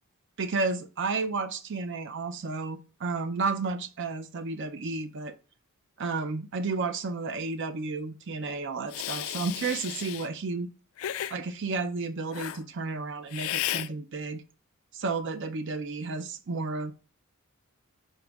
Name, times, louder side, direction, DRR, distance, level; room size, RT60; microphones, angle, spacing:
voice 1, 0.4-5.4 6.0-10.7 11.3-14.4 14.9-16.9, right 4 dB, 60° right, 0.5 m, -32 dB
Hiss, 8.9-10.3 11.0-11.4 12.3-12.6 13.3-13.9, left 13 dB, 70° left, 0.3 m, -33 dB
11.0 x 5.0 x 2.4 m
head